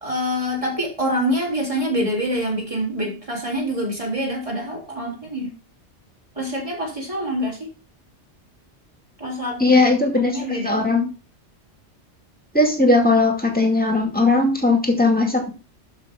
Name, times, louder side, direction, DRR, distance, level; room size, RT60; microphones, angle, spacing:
voice 1, 0.0-5.5 6.4-7.7 9.2-9.6 10.2-11.1, equal, 30° right, -2 dB, 3.8 m, -26 dB
voice 2, 9.6-10.4 10.6-11.0 12.5-15.5, left 2 dB, 10° left, 2 dB, 2.2 m, -18 dB
12.0 x 5.9 x 3.7 m, 0.35 s
omnidirectional pair, 1.2 m